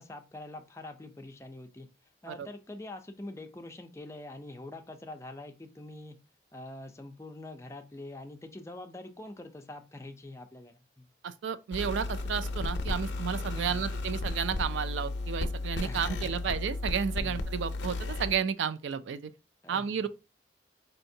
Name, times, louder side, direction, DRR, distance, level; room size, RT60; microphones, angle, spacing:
voice 1, 0.0-1.9 2.2-6.2 6.5-11.1 13.5-13.8 15.8-16.5 17.2-17.4 19.6-20.1, left 2 dB, 15° left, 0.4 m, -45 dB
voice 2, 11.2-19.3 19.7-20.1, right 7 dB, 90° right, 0.3 m, -32 dB
sound 1, 11.7-18.3, left 2 dB, 80° left, 0.5 m, -34 dB
4.3 x 2.8 x 2.6 m
head